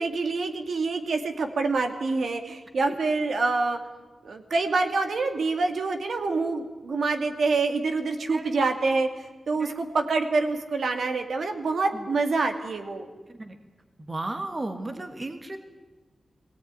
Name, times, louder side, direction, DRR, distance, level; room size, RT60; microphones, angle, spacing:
voice 1, 0.0-3.8 4.2-13.1, right 3 dB, 70° right, 5 dB, 2.3 m, -26 dB
voice 2, 8.2-8.6 9.5-9.8 11.9-12.1 13.3-13.6 14.1-15.6, right 2 dB, 25° right, 7 dB, 1.7 m, -34 dB
21.0 x 17.5 x 9.6 m, 1.3 s
wide cardioid pair, 160°, 0 cm